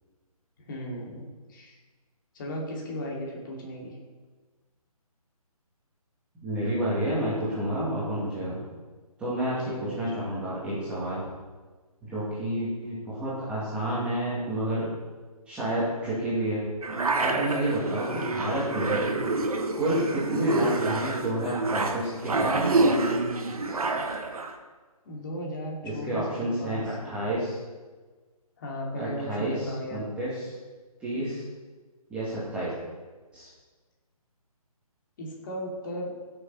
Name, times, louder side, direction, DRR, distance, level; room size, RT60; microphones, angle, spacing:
voice 1, 0.7-1.2 1.5-1.8 2.3-3.9 9.6-10.2 25.0-27.3 28.6-30.0 35.2-36.1, equal, 35° left, -2 dB, 2.7 m, -36 dB
voice 2, 6.4-8.6 9.2-11.2 12.0-14.9 15.5-16.6 17.2-19.0 19.7-23.0 25.8-27.6 29.0-30.5 31.0-31.4 32.1-32.7 33.3-33.5, right 1 dB, 5° right, -10 dB, 2.4 m, -30 dB
sound 1, 16.8-24.5, right 2 dB, 70° right, 1.4 m, -27 dB
15.5 x 6.7 x 4.3 m, 1.3 s
hypercardioid pair, 165°, 19 cm